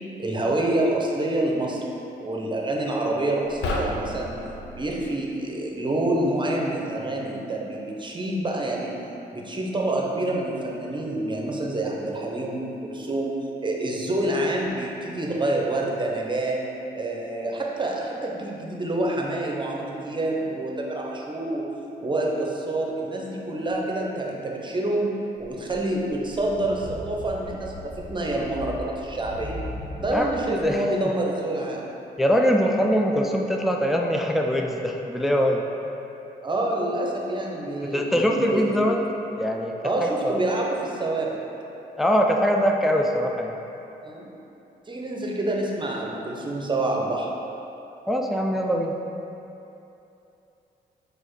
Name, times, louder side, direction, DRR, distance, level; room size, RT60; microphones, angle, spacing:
voice 1, 0.2-1.8 2.2-4.4 4.8-8.9 9.3-13.3 13.6-16.6 17.0-21.7 22.0-29.6 30.0-31.8 36.4-38.6 39.8-41.4 44.0-44.3 44.9-47.3, right 1 dB, 25° right, -1 dB, 0.7 m, -27 dB
sound 1, 3.4-5.1, left 2 dB, 85° left, 0.4 m, -31 dB
sound 2, 25.4-30.8, left 1 dB, 30° left, 1.2 m, -39 dB
voice 2, 30.1-30.8 32.2-35.6 37.8-39.0 39.4-40.4 42.0-43.6 48.1-48.9, equal, ahead, 2 dB, 0.3 m, -23 dB
4.4 x 2.6 x 4.6 m, 2.9 s
supercardioid pair, 60°, 18 cm